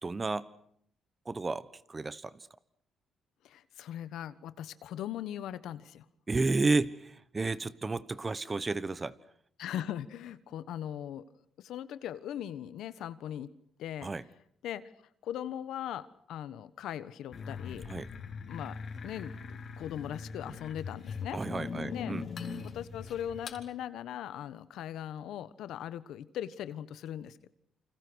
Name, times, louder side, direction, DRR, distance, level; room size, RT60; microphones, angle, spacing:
voice 1, 0.0-0.5 1.2-2.5 6.3-9.1 14.0-14.2 17.9-18.1 21.3-22.3, right 3 dB, 25° right, 16 dB, 1.2 m, -32 dB
voice 2, 3.4-6.0 9.6-11.2 11.6-13.5 13.8-14.1 14.6-14.9 15.2-17.9 18.5-18.8 19.0-21.4 21.9-22.2 22.6-27.5, left 10 dB, 80° left, 14 dB, 1.3 m, -39 dB
sound 1, 17.3-23.6, left 5 dB, 55° left, 4.2 m, -41 dB
28.5 x 26.0 x 6.3 m, 0.69 s
cardioid pair, 90°, 0 cm